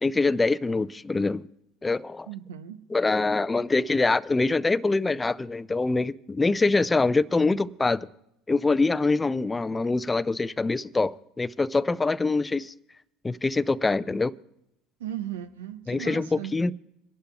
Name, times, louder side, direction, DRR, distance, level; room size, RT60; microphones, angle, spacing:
voice 1, 0.0-1.4 1.8-2.3 2.9-8.1 8.5-12.7 13.2-14.3 15.9-16.7, left 3 dB, 15° left, 0.4 m, -24 dB
voice 2, 2.3-2.8 15.0-16.6, right 11 dB, 85° right, 0.7 m, -36 dB
28.0 x 11.5 x 2.3 m
hypercardioid pair, 80°, 0 cm